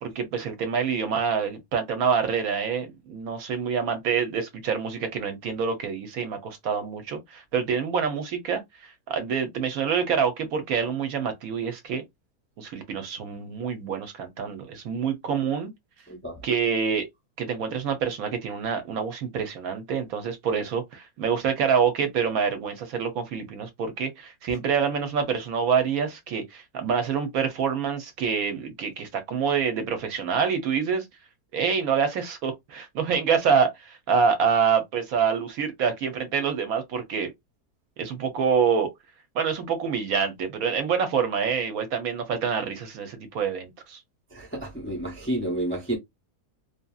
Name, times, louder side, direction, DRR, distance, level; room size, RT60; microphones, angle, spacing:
voice 1, 0.0-12.0 12.6-15.7 16.4-17.1 17.4-31.1 31.5-37.3 38.0-38.9 39.3-44.0, right 6 dB, 70° right, 1.0 m, -26 dB
voice 2, 16.1-16.4 44.3-46.0, right 1 dB, 15° left, 0.4 m, -30 dB
2.7 x 2.6 x 2.3 m
omnidirectional pair, 1.7 m